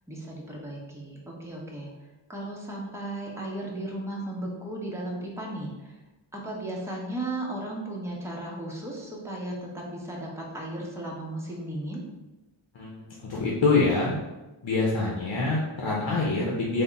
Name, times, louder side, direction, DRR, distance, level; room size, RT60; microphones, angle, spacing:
voice 1, 0.1-1.9 2.3-6.0 6.3-12.0, right 1 dB, 5° right, -3 dB, 0.8 m, -35 dB
voice 2, 12.7-14.1 14.6-16.8, left 3 dB, 65° left, -4 dB, 0.7 m, -25 dB
3.4 x 2.1 x 3.9 m, 1.1 s
wide cardioid pair, 70°, 48 cm